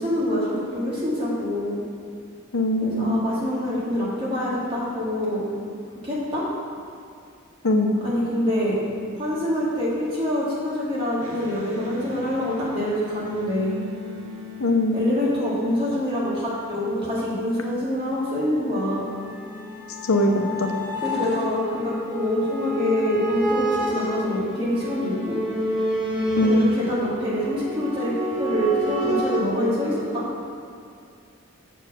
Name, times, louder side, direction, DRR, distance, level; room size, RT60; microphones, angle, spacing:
voice 1, 0.0-1.8 2.8-5.5 6.0-6.4 8.0-8.8 9.1-13.8 14.9-19.1 21.0-25.4 26.4-30.3, left 1 dB, 25° right, -8 dB, 2.1 m, -25 dB
voice 2, 2.5-3.1 7.6-7.9 14.6-15.0 20.1-20.3 20.6-20.7 26.4-26.7, left 1 dB, 85° left, 3 dB, 0.8 m, -20 dB
Electric guitar, 11.2-16.7, left 5 dB, 75° right, 1.2 m, -40 dB
sound 1, 18.7-29.4, equal, 5° right, 1.5 m, -29 dB
7.1 x 4.7 x 7.0 m, 2.4 s
head